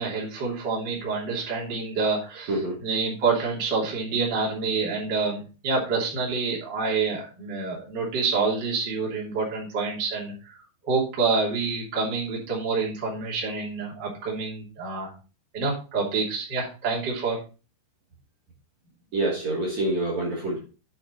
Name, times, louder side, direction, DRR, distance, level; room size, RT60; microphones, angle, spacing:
voice 1, 0.0-2.5 2.8-10.5 10.8-15.1 15.5-17.4, right 4 dB, 25° right, -3 dB, 3.0 m, -27 dB
voice 2, 2.5-2.8 19.1-20.6, right 2 dB, 45° right, -4 dB, 3.3 m, -26 dB
8.4 x 8.0 x 4.0 m, 0.33 s
omnidirectional pair, 5.3 m